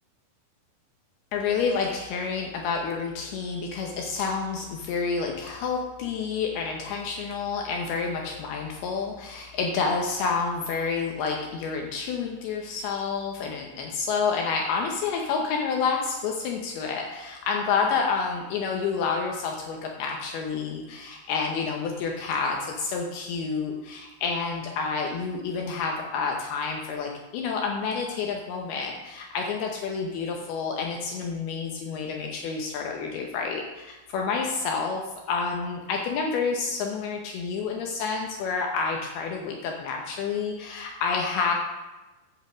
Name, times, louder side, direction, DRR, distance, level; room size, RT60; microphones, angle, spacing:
voice 1, 1.3-35.0 35.3-41.5, left 5 dB, 75° left, 1 dB, 2.7 m, -29 dB
8.1 x 8.0 x 4.9 m, 1.1 s
omnidirectional pair, 4.8 m